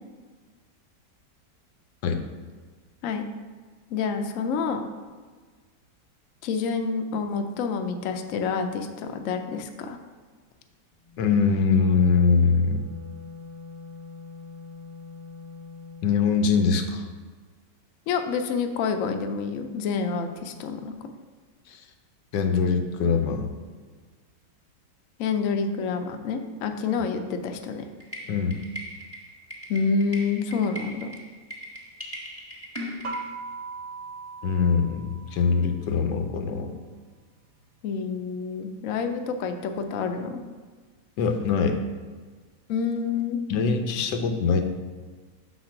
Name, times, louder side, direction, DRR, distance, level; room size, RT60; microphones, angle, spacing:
voice 1, 3.9-4.8 6.4-10.0 18.1-21.1 25.2-27.9 29.7-31.1 37.8-40.4 42.7-43.4, left 5 dB, 65° left, 6 dB, 0.9 m, -28 dB
Wind instrument woodwind instrument, 10.9-16.1, left 4 dB, 25° left, 0.7 m, -43 dB
voice 2, 11.2-12.9 16.0-17.1 21.7-21.8 22.3-23.5 28.3-28.6 34.4-36.7 41.2-41.8 43.5-44.6, left 5 dB, 90° left, 6 dB, 1.3 m, -23 dB
sound 1, 28.0-33.2, equal, 10° left, 1.1 m, -39 dB
sound 2, 33.0-35.8, right 4 dB, 60° right, 0.8 m, -38 dB
6.5 x 4.1 x 5.8 m, 1.5 s
omnidirectional pair, 1.8 m